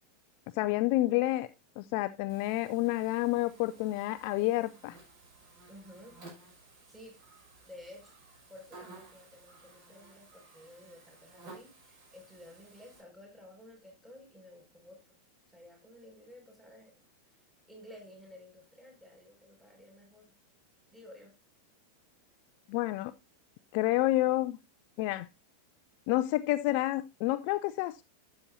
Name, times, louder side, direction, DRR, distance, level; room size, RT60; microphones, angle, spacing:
voice 1, 0.5-1.5 1.8-5.0 22.7-23.1 23.7-24.6 25.0-25.3 26.1-28.0, left 17 dB, 45° left, 0.4 m, -29 dB
Buzz, 2.3-13.0, right 3 dB, 40° right, 6.2 m, -55 dB
voice 2, 5.7-6.2 6.9-7.2 7.6-8.1 8.5-15.2 15.5-17.0 17.3-20.3 20.9-21.3, left 1 dB, 5° right, 6.7 m, -53 dB
12.5 x 8.3 x 2.7 m
figure-of-eight pair, 90°, 0 cm